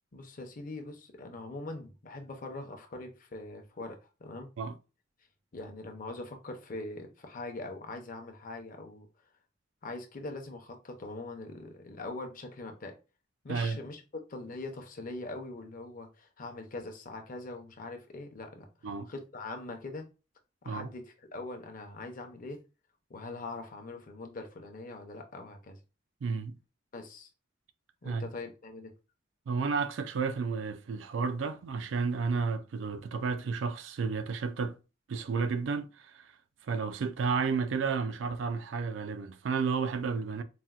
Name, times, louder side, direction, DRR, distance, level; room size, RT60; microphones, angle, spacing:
voice 1, 0.1-4.5 5.5-9.1 9.8-12.9 13.4-14.0 14.3-18.7 19.1-20.1 20.6-22.6 23.1-25.8 26.9-27.3 28.0-28.9, left 2 dB, 45° left, 0.6 m, -42 dB
voice 2, 13.5-13.8 18.8-19.1 20.7-20.9 26.2-26.6 28.0-28.2 29.5-34.8 35.1-36.3 36.6-40.4, right 5 dB, 85° right, 0.4 m, -32 dB
4.1 x 2.1 x 2.3 m
head